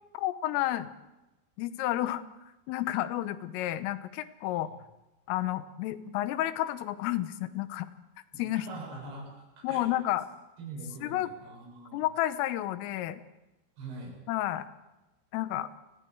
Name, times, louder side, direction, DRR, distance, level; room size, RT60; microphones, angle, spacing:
voice 1, 0.1-0.9 1.6-2.3 2.7-4.7 5.3-7.9 8.4-8.7 9.6-10.3 11.0-11.3 11.9-13.2 14.3-14.7 15.3-15.7, left 14 dB, 85° left, 12 dB, 3.6 m, -31 dB
voice 2, 8.5-9.9 10.6-12.1 13.8-14.2, right 3 dB, 55° right, -3 dB, 9.4 m, -43 dB
29.5 x 19.5 x 4.7 m, 1.0 s
omnidirectional pair, 5.8 m